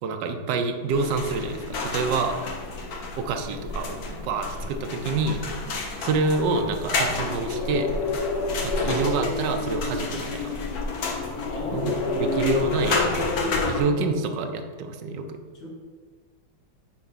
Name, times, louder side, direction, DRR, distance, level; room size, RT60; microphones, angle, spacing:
voice 1, 0.0-2.4 3.2-5.4 6.0-7.9 8.6-10.5 11.7-15.4, right 3 dB, 70° right, 6 dB, 1.3 m, -27 dB
sound 1, 0.9-13.8, left 3 dB, 55° left, 1.4 m, -29 dB
voice 2, 11.5-14.2 15.6-15.7, right 2 dB, 75° left, -4 dB, 2.6 m, -36 dB
9.2 x 3.6 x 5.6 m, 1.5 s
omnidirectional pair, 2.1 m